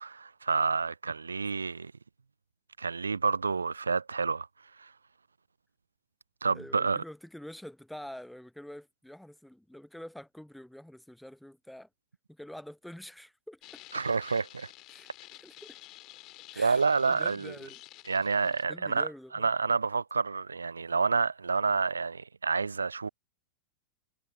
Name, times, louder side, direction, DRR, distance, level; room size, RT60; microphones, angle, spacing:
voice 1, 0.0-1.9 2.8-4.5 4.8-4.9 6.4-7.0 13.9-14.7 16.6-17.5 18.1-19.1 19.3-23.1, right 4 dB, 75° right, 0.3 m, -29 dB
voice 2, 6.5-11.9 12.3-13.8 14.9-15.8 16.5-16.8 17.1-17.8 18.4-19.5, left 1 dB, ahead, 0.7 m, -47 dB
sound 1, 13.6-18.6, left 19 dB, 40° left, 2.0 m, -51 dB
figure-of-eight pair, 90°, 0 cm